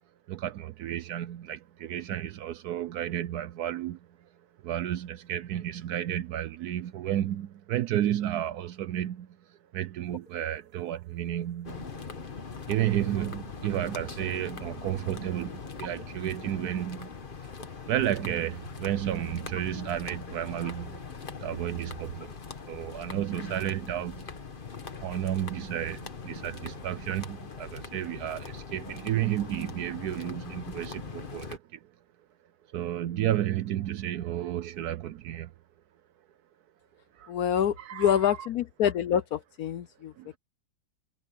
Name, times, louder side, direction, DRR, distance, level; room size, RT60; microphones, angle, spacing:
voice 1, 0.3-4.3 4.6-12.4 12.7-17.5 17.8-22.4 22.7-24.3 25.0-31.9 32.7-35.5 37.1-37.3 37.8-38.3 40.2-40.4, right 12 dB, 70° right, 1.0 m, -32 dB
sound 1, 10.1-23.7, left 1 dB, 50° left, 8.2 m, -54 dB
sound 2, 11.6-31.6, left 5 dB, 30° left, 1.3 m, -41 dB
sound 3, 13.8-17.5, left 1 dB, 10° left, 3.2 m, -55 dB
voice 2, 37.3-40.1, left 9 dB, 65° left, 1.0 m, -26 dB
omnidirectional pair, 2.0 m